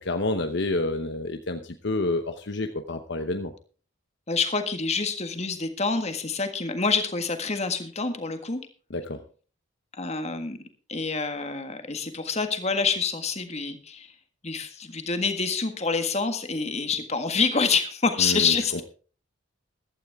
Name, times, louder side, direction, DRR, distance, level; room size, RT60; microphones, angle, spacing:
voice 1, 0.0-3.5 8.9-9.2 18.2-18.8, left 2 dB, 55° left, 7 dB, 0.9 m, -29 dB
voice 2, 4.3-8.6 10.0-10.6 10.9-14.1 14.4-18.8, left 4 dB, 30° left, 7 dB, 1.7 m, -27 dB
15.0 x 12.5 x 3.6 m, 0.38 s
head